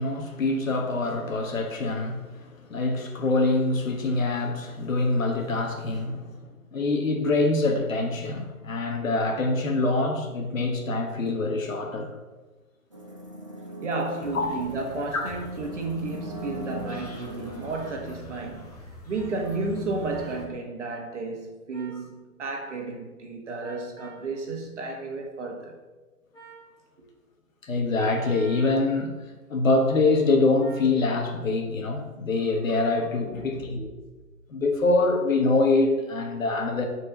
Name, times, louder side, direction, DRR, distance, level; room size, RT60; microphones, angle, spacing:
voice 1, 0.0-6.4 6.7-12.2 14.3-14.5 15.1-15.3 27.6-29.2 29.5-33.9 34.5-36.9, left 3 dB, 60° left, 1.5 m, -25 dB
sound 1, 12.9-17.9, right 1 dB, 20° right, 0.5 m, -40 dB
voice 2, 13.8-25.8 33.2-33.7, right 3 dB, 50° right, 1.6 m, -32 dB
sound 2, 14.2-20.5, left 2 dB, 25° left, 1.0 m, -46 dB
sound 3, 17.7-17.9 19.1-19.3 20.1-20.4 21.7-22.0 23.6-24.2 26.3-26.6 28.0-28.8 30.6-30.9, right 6 dB, 10° left, 1.4 m, -47 dB
6.3 x 4.7 x 6.4 m
hypercardioid pair, 165°, 46 cm